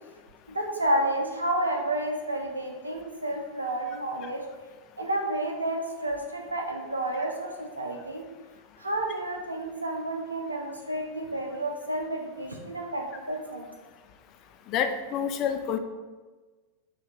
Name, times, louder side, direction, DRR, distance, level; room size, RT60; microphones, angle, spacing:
voice 1, 0.5-4.4 5.0-8.2 8.8-13.7, right 1 dB, 80° right, 1 dB, 0.6 m, -30 dB
voice 2, 14.7-15.8, left 7 dB, 35° left, 7 dB, 0.3 m, -28 dB
6.4 x 2.3 x 2.9 m, 1.3 s
figure-of-eight pair, 90°, 0 cm